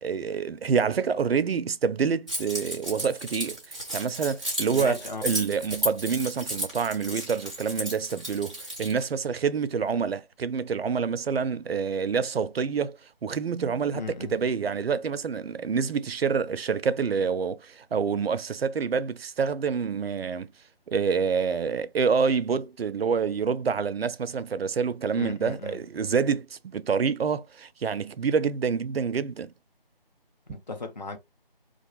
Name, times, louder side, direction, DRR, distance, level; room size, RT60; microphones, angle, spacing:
voice 1, 0.0-20.5 20.9-29.5 30.5-30.6, right 6 dB, 85° right, 0.5 m, -27 dB
Keys jangling, 2.3-9.0, equal, ahead, 0.5 m, -34 dB
voice 2, 4.7-5.3 13.9-14.3 25.1-25.8 30.5-31.2, left 3 dB, 50° left, 0.7 m, -36 dB
2.4 x 2.3 x 2.9 m
figure-of-eight pair, 160°, 29 cm